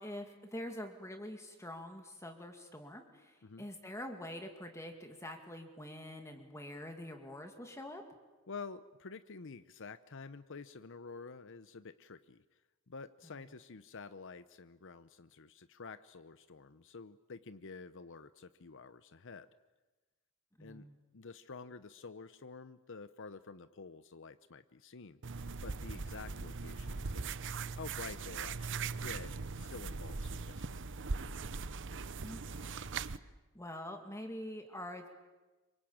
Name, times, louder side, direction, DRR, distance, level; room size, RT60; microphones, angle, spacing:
voice 1, 0.0-8.0 13.2-13.4 20.6-20.9 32.2-33.3 33.5-35.1, left 1 dB, 15° left, 4 dB, 2.3 m, -46 dB
voice 2, 8.5-12.6 12.9-19.5 20.6-20.9 21.1-25.2 25.6-27.4 27.7-29.3 29.6-30.8, left 4 dB, 60° left, 12 dB, 0.8 m, -49 dB
sound 1, 25.2-33.2, right 4 dB, 60° right, 0.9 m, -40 dB
27.0 x 24.5 x 8.8 m, 1.2 s
head